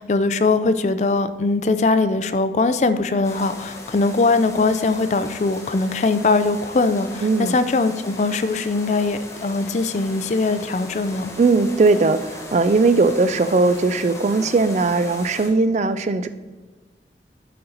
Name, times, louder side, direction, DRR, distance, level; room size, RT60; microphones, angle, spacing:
voice 1, 0.0-11.3, left 3 dB, 40° left, 11 dB, 0.4 m, -21 dB
sound 1, 3.2-15.5, left 2 dB, 15° left, 1.0 m, -38 dB
voice 2, 7.2-7.6 11.4-16.3, right 3 dB, 40° right, 12 dB, 0.3 m, -18 dB
11.5 x 4.3 x 3.9 m, 1.3 s
head